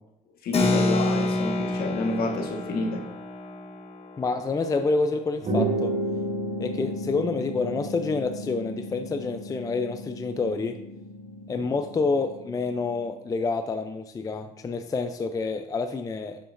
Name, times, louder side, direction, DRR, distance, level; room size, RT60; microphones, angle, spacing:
voice 1, 0.4-3.0 11.5-11.6, left 3 dB, 65° left, 3 dB, 1.3 m, -29 dB
Keyboard (musical), 0.5-6.6, left 1 dB, 35° left, 1.1 m, -29 dB
voice 2, 4.2-5.9 6.6-10.8 11.5-16.4, left 3 dB, 20° left, 8 dB, 0.4 m, -28 dB
sound 1, 5.4-13.1, right 1 dB, 45° right, 2.2 m, -33 dB
7.7 x 6.8 x 2.5 m, 0.89 s
cardioid pair, 110°, 17 cm